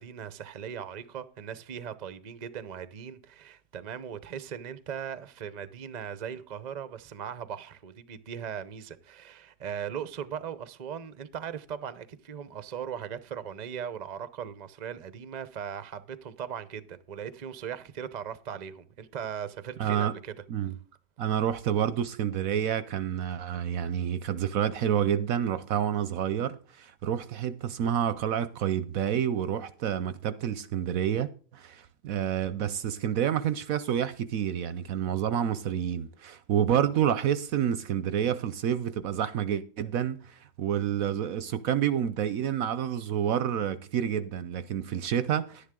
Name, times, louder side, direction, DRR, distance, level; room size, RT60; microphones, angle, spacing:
voice 1, 0.0-20.3, right 8 dB, 50° right, 0.5 m, -39 dB
voice 2, 19.8-20.1 20.5-20.7 21.2-45.7, right 9 dB, 65° right, 0.9 m, -29 dB
11.5 x 10.0 x 3.7 m
omnidirectional pair, 1.8 m